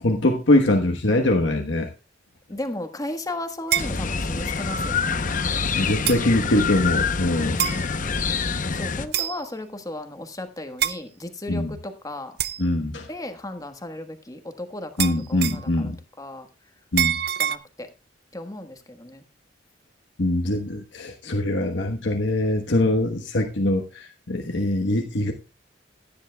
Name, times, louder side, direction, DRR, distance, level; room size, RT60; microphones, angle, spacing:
voice 1, 0.0-1.9 5.6-7.6 11.5-11.7 12.6-13.1 15.0-16.0 16.9-17.2 20.2-25.3, left 1 dB, 80° left, 1.3 m, -23 dB
voice 2, 2.5-5.3 8.7-12.3 13.1-15.9 16.2-16.5 17.4-17.9 18.3-19.2, left 1 dB, 20° left, 1.4 m, -35 dB
sound 1, 3.7-4.0 5.1-5.2 6.1-6.3 7.6-7.8 9.1-9.5 10.8-11.0 12.4-12.6 15.0-15.7 17.0-17.6, right 11 dB, 55° right, 0.6 m, -25 dB
sound 2, 3.8-9.1, left 5 dB, 45° left, 0.8 m, -26 dB
17.0 x 10.0 x 2.3 m
head